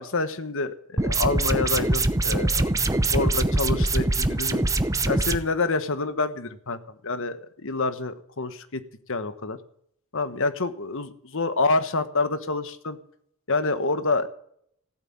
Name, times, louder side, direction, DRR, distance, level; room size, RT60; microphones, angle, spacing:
voice 1, 0.0-2.7 3.1-4.7 5.1-8.8 9.1-9.6 10.1-13.0 13.5-14.3, left 3 dB, 60° left, 11 dB, 1.3 m, -27 dB
sound 1, 1.0-5.4, right 2 dB, 15° right, 0.8 m, -23 dB
16.0 x 8.5 x 8.8 m, 0.67 s
head